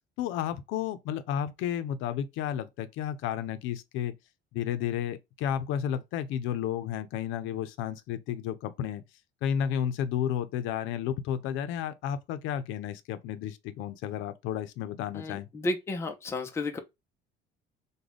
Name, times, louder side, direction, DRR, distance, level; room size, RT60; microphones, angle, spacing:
voice 1, 0.2-4.1 4.5-9.0 9.4-15.5, left 9 dB, 85° left, 0.5 m, -32 dB
voice 2, 15.1-16.8, left 2 dB, 15° left, 0.4 m, -32 dB
3.6 x 2.2 x 3.2 m
cardioid pair, 165°, 20 cm